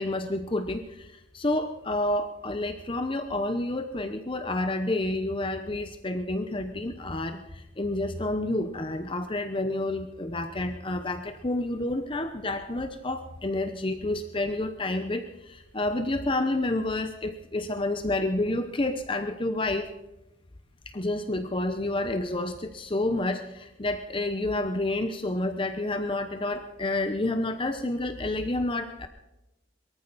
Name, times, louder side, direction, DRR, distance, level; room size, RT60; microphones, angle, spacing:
voice 1, 0.0-19.9 20.9-29.1, left 2 dB, 25° left, 8 dB, 0.9 m, -29 dB
23.0 x 14.0 x 4.2 m, 0.95 s
head